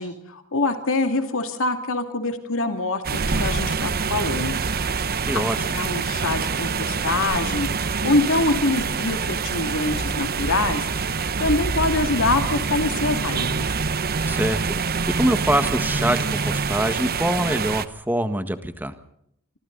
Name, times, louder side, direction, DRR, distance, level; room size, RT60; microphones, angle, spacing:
voice 1, 0.0-4.6 5.3-5.4 5.7-10.9 11.4-13.7, left 2 dB, 60° left, 7 dB, 2.6 m, -25 dB
sound 1, 3.0-17.9, right 4 dB, 45° right, 1.0 m, -25 dB
voice 2, 5.3-5.7 14.3-18.9, right 1 dB, 10° right, 9 dB, 1.6 m, -24 dB
26.5 x 25.5 x 4.0 m, 0.73 s
head